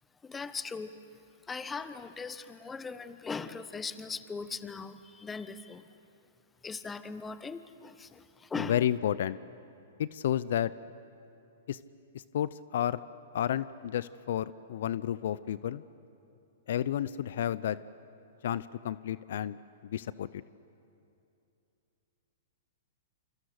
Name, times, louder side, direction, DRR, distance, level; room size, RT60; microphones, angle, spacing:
voice 1, 0.2-0.9 1.5-5.9 6.6-8.2 8.5-8.8, left 4 dB, 15° left, 12 dB, 1.2 m, -39 dB
voice 2, 8.6-9.4 10.0-10.7 11.7-11.8 12.3-13.0 13.3-15.8 16.7-17.8 18.4-19.6 19.9-20.4, left 10 dB, 65° left, 17 dB, 0.6 m, -31 dB
28.0 x 26.0 x 8.2 m, 2.7 s
hypercardioid pair, 125°, 0 cm